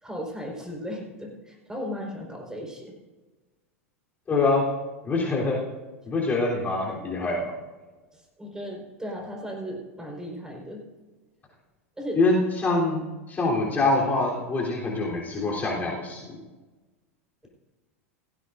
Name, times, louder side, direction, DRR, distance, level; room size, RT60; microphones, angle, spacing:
voice 1, 0.0-2.9 8.1-10.8 12.0-12.2, equal, 10° right, 0 dB, 4.4 m, -36 dB
voice 2, 4.3-4.6 5.0-5.6 6.0-7.5 12.1-16.4, left 3 dB, 25° left, -3 dB, 3.4 m, -25 dB
18.0 x 15.0 x 2.6 m, 1.2 s
figure-of-eight pair, 90°, 7 cm